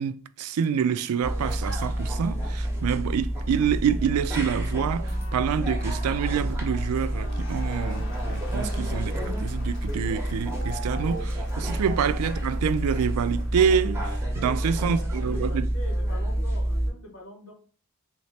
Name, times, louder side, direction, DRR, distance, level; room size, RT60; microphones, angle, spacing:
voice 1, 0.0-15.7, right 7 dB, 90° right, 0.3 m, -27 dB
sound 1, 1.2-16.9, right 1 dB, 10° right, 0.7 m, -29 dB
sound 2, 5.0-7.9, left 2 dB, 30° left, 0.5 m, -48 dB
Crowd, 6.9-14.0, left 1 dB, 60° left, 0.9 m, -46 dB
voice 2, 14.7-17.5, left 1 dB, 75° left, 1.2 m, -43 dB
3.1 x 2.8 x 3.2 m
head